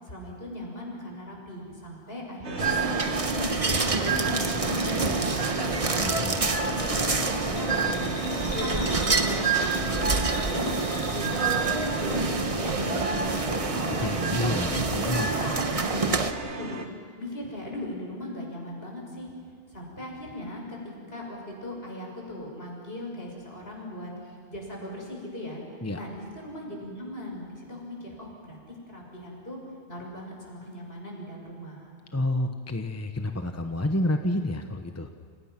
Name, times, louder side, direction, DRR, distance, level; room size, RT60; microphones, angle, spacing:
voice 1, 0.1-3.5 4.0-6.2 6.7-8.3 8.6-10.7 11.1-13.3 13.8-14.6 15.5-16.8 17.2-19.3 19.7-24.1 24.5-25.6 25.9-28.6 28.9-29.6 29.9-31.9, left 1 dB, 60° left, -1 dB, 6.9 m, -38 dB
sound 1, 2.4-16.9, right 2 dB, 85° right, 2.0 m, -36 dB
sound 2, 2.6-16.3, right 3 dB, 35° right, 1.2 m, -27 dB
voice 2, 6.0-6.4 14.0-15.4 25.8-26.0 32.1-35.1, left 1 dB, 15° left, 5 dB, 1.1 m, -29 dB
Bell, 7.4-12.4 12.7-13.5 13.8-13.9, left 1 dB, 85° left, 6.5 m, -41 dB
29.5 x 28.0 x 6.0 m, 2.2 s
omnidirectional pair, 1.1 m